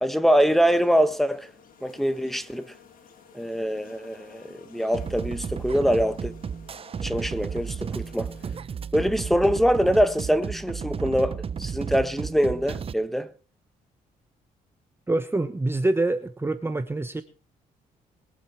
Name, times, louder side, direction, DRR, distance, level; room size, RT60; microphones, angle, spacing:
voice 1, 0.0-1.5 1.8-2.7 3.3-6.3 7.0-8.3 8.9-13.3, equal, ahead, 1.5 m, -24 dB
sound 1, 0.6-8.6, left 7 dB, 65° left, 4.1 m, -52 dB
sound 2, 4.9-12.9, right 6 dB, 40° right, 0.7 m, -33 dB
voice 2, 15.1-17.2, right 2 dB, 15° right, 1.1 m, -25 dB
22.5 x 7.8 x 4.5 m
cardioid pair, 100°, 15 cm